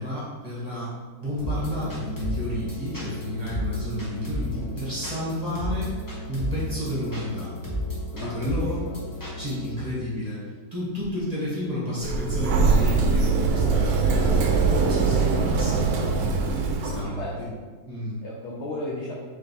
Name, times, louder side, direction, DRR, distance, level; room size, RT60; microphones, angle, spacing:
voice 1, 0.0-5.9 6.3-7.5 8.1-8.9 9.4-16.3 16.8-17.5 17.8-18.2, equal, 25° right, -8 dB, 1.1 m, -31 dB
sound 1, 1.4-9.7, left 1 dB, 20° left, 0.6 m, -32 dB
voice 2, 4.5-4.8 8.1-9.0 17.2-17.3 18.2-19.1, left 2 dB, 65° left, -4 dB, 0.7 m, -35 dB
Sliding door, 12.0-17.0, right 4 dB, 75° right, 1.0 m, -22 dB
3.5 x 3.2 x 4.0 m, 1.4 s
omnidirectional pair, 1.8 m